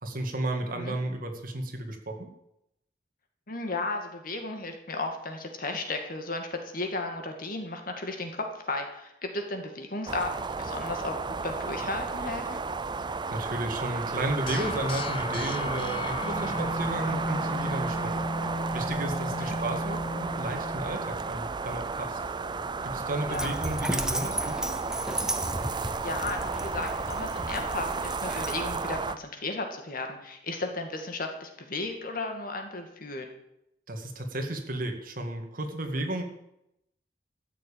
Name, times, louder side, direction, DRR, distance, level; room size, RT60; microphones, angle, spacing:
voice 1, 0.0-2.3 13.3-18.2 18.7-22.2 22.8-24.8 33.9-36.2, right 1 dB, 50° right, 4 dB, 2.2 m, -33 dB
voice 2, 3.5-11.1 11.4-12.6 19.3-19.6 23.3-23.5 26.0-33.3, left 2 dB, 50° left, 4 dB, 2.2 m, -34 dB
sound 1, 10.1-29.2, right 4 dB, 25° right, 0.5 m, -33 dB
sound 2, 14.5-21.4, left 1 dB, 30° left, 0.6 m, -34 dB
Dog, 23.3-28.8, right 1 dB, 5° right, 0.9 m, -34 dB
13.5 x 7.4 x 8.7 m, 0.82 s
head